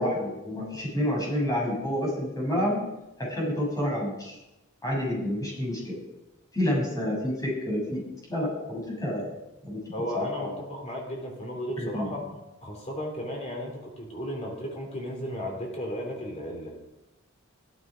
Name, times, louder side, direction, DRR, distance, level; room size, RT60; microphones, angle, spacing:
voice 1, 0.0-2.8 3.2-4.4 4.8-6.0 6.5-8.0 8.3-9.2 9.6-9.8 10.1-10.6 11.8-12.1, equal, 15° left, -3 dB, 7.3 m, -29 dB
voice 2, 9.9-12.2 12.6-16.7, left 1 dB, 35° left, 1 dB, 3.2 m, -34 dB
15.5 x 13.0 x 5.1 m, 0.95 s
head